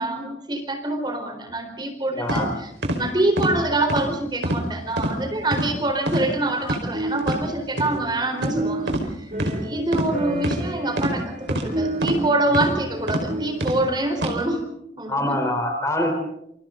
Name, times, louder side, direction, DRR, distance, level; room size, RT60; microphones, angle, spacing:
voice 1, 0.0-8.9 9.2-9.3 9.6-14.6 15.0-15.4, right 2 dB, 25° right, 5 dB, 4.1 m, -25 dB
voice 2, 2.1-2.5 15.1-16.1, left 1 dB, 15° left, 4 dB, 3.9 m, -24 dB
sound 1, 2.3-2.4 2.8-3.0 3.4-3.5 3.9-4.1 4.4-4.6 5.0-5.1 5.5-5.7 6.1-6.3 6.6-6.8 7.2-7.4 7.8-7.9 8.4-8.6 8.9-9.0 9.4-9.5 9.9-10.1 10.4-10.6 11.0-11.1 11.5-11.6 12.0-12.2 12.5-12.7 13.1-13.2 13.6-13.8 14.2-14.3, right 1 dB, 90° right, 4.8 m, -24 dB
sound 2, 6.9-8.2 8.5-13.8, right 2 dB, 45° right, 3.1 m, -30 dB
28.0 x 26.5 x 3.9 m, 0.78 s
head